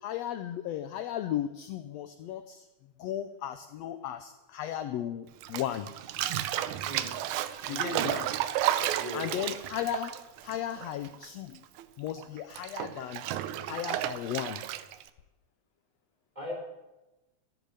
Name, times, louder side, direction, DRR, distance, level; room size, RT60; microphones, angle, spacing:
voice 1, 0.0-2.7 3.0-5.9 7.7-8.3 9.1-10.1 10.4-11.6 12.0-13.2 13.7-14.6, left 11 dB, 75° left, 10 dB, 1.7 m, -35 dB
Bathtub (filling or washing), 5.4-11.3 11.5-15.1, right 12 dB, 85° right, 2.1 m, -32 dB
voice 2, 7.7-8.1 9.0-9.2 16.4-16.5, equal, 15° right, -3 dB, 5.6 m, -39 dB
14.0 x 11.0 x 8.1 m, 1.0 s
omnidirectional pair, 3.4 m